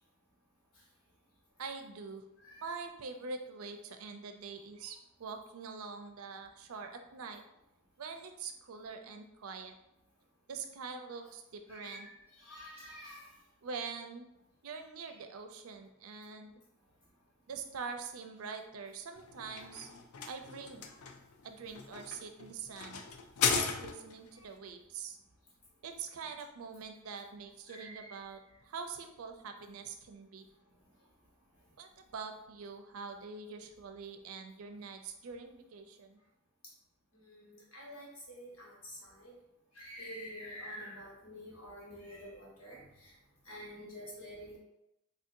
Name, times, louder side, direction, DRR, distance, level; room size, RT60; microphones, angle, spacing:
voice 1, 1.6-2.2 2.6-7.4 8.0-9.7 10.5-12.1 13.6-14.3 14.6-16.5 17.5-19.9 20.2-20.9 21.4-23.0 23.5-25.2 25.8-30.5 31.8-36.2, right 5 dB, 75° right, 6 dB, 0.4 m, -44 dB
voice 2, 11.7-13.3 15.1-15.2 20.2-20.3 20.9-21.0 27.7-28.2 37.1-39.3 39.7-43.1 43.4-44.6, equal, 65° left, -3 dB, 1.4 m, -48 dB
sound 1, 19.2-24.3, left 6 dB, 85° left, 0.4 m, -36 dB
4.1 x 2.7 x 2.5 m, 0.86 s
head